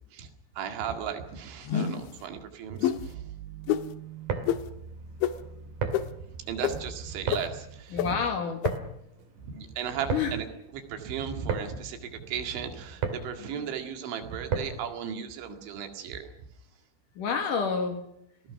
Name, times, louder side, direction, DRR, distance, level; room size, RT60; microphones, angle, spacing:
voice 1, 0.6-3.3 6.5-8.2 9.4-10.5 10.7-16.3, right 8 dB, 85° right, 5 dB, 4.5 m, -36 dB
sound 1, 1.7-2.1 2.8-3.0 3.7-3.8 4.5-4.6 5.2-5.3 5.9-6.0 6.6-6.7 7.3-7.4 8.0-8.1 8.6-8.7, left 10 dB, 90° left, 3.4 m, -26 dB
sound 2, 2.6-7.8, right 7 dB, 70° right, 2.9 m, -45 dB
sound 3, 4.1-15.0, right 5 dB, 50° right, 3.6 m, -36 dB
voice 2, 7.9-8.6 10.1-10.4 13.4-13.7 17.2-18.0, left 5 dB, 60° left, 6 dB, 2.6 m, -29 dB
29.5 x 18.5 x 6.0 m, 0.76 s
omnidirectional pair, 5.2 m